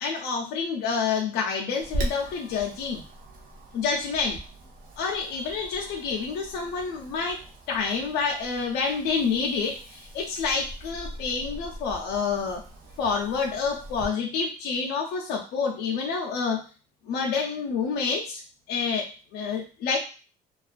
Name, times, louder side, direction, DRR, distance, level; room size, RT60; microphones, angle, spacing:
voice 1, 0.0-3.0 3.7-4.4 5.0-7.4 7.7-12.6 13.0-16.6 17.1-18.4 18.7-20.0, left 5 dB, 75° left, 0 dB, 0.4 m, -28 dB
Wind, 1.8-14.1, right 1 dB, 55° right, 0.6 m, -40 dB
2.4 x 2.2 x 2.4 m, 0.36 s
cardioid pair, 110°, 17 cm